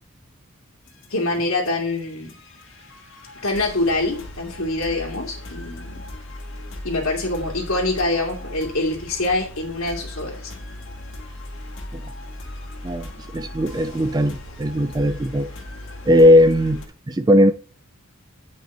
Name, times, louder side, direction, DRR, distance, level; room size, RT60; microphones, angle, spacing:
sound 1, 0.9-16.9, left 1 dB, 60° left, 2.4 m, -38 dB
voice 1, 1.1-2.3 3.4-6.0 6.8-10.5, left 2 dB, 75° left, 2.4 m, -25 dB
voice 2, 12.8-15.5 16.1-17.5, left 1 dB, 20° right, 0.4 m, -18 dB
10.5 x 5.5 x 4.4 m
head